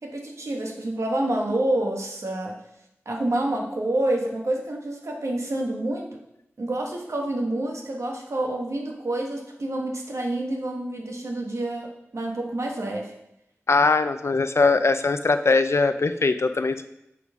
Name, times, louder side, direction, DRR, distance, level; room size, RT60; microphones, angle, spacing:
voice 1, 0.0-2.6 3.0-6.2 6.6-13.1, right 1 dB, 75° right, 0 dB, 1.2 m, -28 dB
voice 2, 13.7-16.8, left 3 dB, 60° left, 10 dB, 0.4 m, -21 dB
9.2 x 3.9 x 3.5 m, 0.82 s
wide cardioid pair, 55°, 5 cm